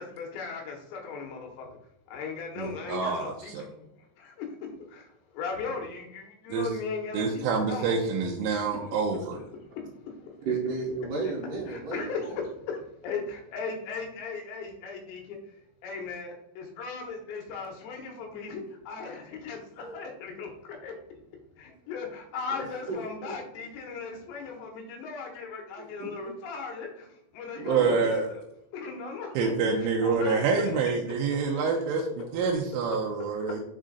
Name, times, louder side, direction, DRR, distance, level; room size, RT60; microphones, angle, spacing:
voice 1, 0.0-1.7 2.1-3.5 4.2-8.0 8.7-8.8 9.8-10.5 11.7-21.2 21.6-28.4 28.7-30.9 31.3-31.4 33.5-33.6, left 5 dB, 75° left, 1 dB, 3.1 m, -38 dB
voice 2, 2.6-3.2 6.5-6.7 7.1-9.4 27.7-28.3 29.4-32.0 32.3-33.6, right 5 dB, 85° right, 0 dB, 3.2 m, -27 dB
voice 3, 10.5-12.2 19.8-19.9 22.5-23.3 26.0-26.3 27.6-28.1 32.3-32.4, right 3 dB, 70° right, -4 dB, 2.1 m, -33 dB
7.4 x 3.8 x 3.9 m, 0.82 s
omnidirectional pair, 5.7 m